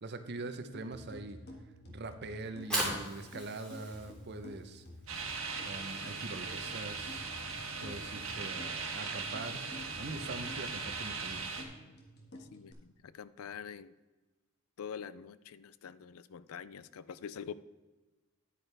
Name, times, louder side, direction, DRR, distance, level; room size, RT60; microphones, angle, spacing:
voice 1, 0.0-1.4 1.9-4.8 5.6-7.3 7.8-9.6 10.0-11.5, right 2 dB, 50° right, 9 dB, 0.8 m, -43 dB
sound 1, 0.7-12.7, equal, 50° left, 1.6 m, -51 dB
Fire, 2.4-8.6, right 1 dB, 5° left, 2.7 m, -41 dB
sound 2, 5.1-11.6, right 4 dB, 65° right, 1.4 m, -39 dB
voice 2, 12.5-13.9 14.8-17.5, left 7 dB, 75° left, 17 dB, 0.4 m, -45 dB
10.0 x 8.8 x 3.3 m, 1.2 s
head